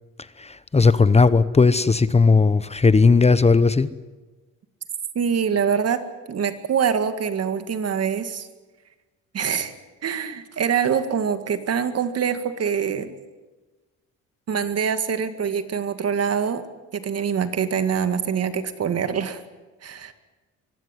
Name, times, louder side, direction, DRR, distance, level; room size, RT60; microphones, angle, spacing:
voice 1, 0.4-3.9, left 4 dB, 20° left, 15 dB, 0.9 m, -17 dB
voice 2, 5.2-6.0 6.3-8.5 9.3-9.7 10.0-13.1 14.5-16.6 16.9-19.4 19.8-20.1, right 7 dB, 55° right, 10 dB, 2.0 m, -24 dB
23.5 x 16.0 x 9.9 m, 1.2 s
cardioid pair, 90°, 30 cm